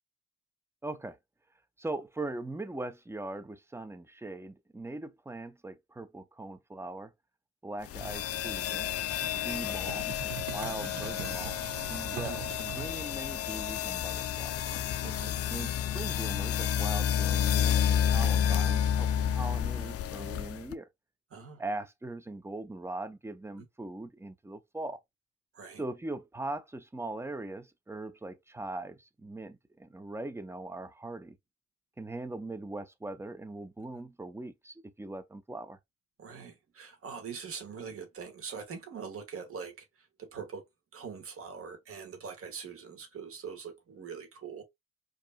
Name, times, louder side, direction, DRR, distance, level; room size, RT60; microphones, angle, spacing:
voice 1, 0.8-1.2 1.8-7.1 7.6-8.9 9.4-11.6 11.9-14.6 15.5-20.9 21.6-25.0 25.8-31.4 32.0-35.8, right 2 dB, 10° right, 0.5 m, -40 dB
sound 1, 7.9-20.8, left 9 dB, 50° left, 0.4 m, -30 dB
sound 2, 8.9-13.1 14.7-15.5, right 13 dB, 75° right, 0.5 m, -43 dB
voice 2, 15.0-15.4 21.3-21.6 25.5-25.8 36.2-40.6 40.9-44.6, right 6 dB, 50° right, 1.4 m, -43 dB
4.8 x 2.7 x 2.2 m
cardioid pair, 90°, 30 cm